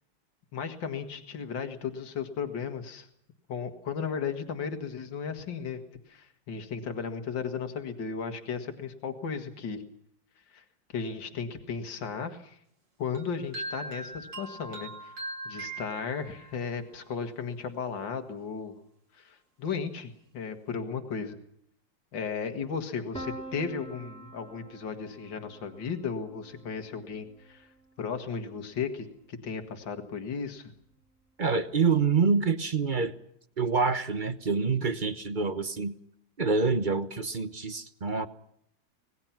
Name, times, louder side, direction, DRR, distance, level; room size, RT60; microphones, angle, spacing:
voice 1, 0.5-3.1 3.5-9.8 10.5-10.6 10.9-12.6 13.0-15.1 15.5-18.7 19.1-21.4 22.1-27.7 28.0-30.7, left 6 dB, 70° left, 6 dB, 2.6 m, -35 dB
sound 1, 13.1-16.6, right 2 dB, 65° right, 4.4 m, -40 dB
Piano, 23.1-28.9, right 2 dB, 5° left, 2.4 m, -46 dB
voice 2, 31.4-33.1 33.6-36.0 36.4-38.3, right 4 dB, 35° right, 12 dB, 0.9 m, -26 dB
26.0 x 19.5 x 6.0 m, 0.72 s
omnidirectional pair, 2.1 m